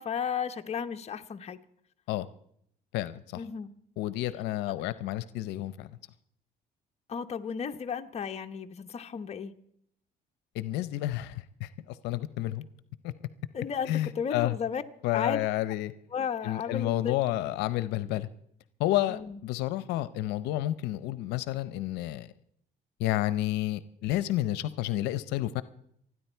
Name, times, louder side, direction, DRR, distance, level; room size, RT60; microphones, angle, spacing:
voice 1, 0.0-1.6 3.3-3.7 4.7-4.8 7.1-9.5 13.5-14.8 15.1-15.4 16.1-17.2 19.1-19.4, left 7 dB, 40° left, 1.1 m, -34 dB
voice 2, 2.9-3.4 4.0-5.9 10.5-12.7 13.0-13.1 13.9-14.6 15.0-15.9 16.4-18.3 18.8-22.3 23.0-25.6, left 14 dB, 90° left, 0.7 m, -30 dB
27.5 x 10.0 x 4.5 m
cardioid pair, 110°, 17 cm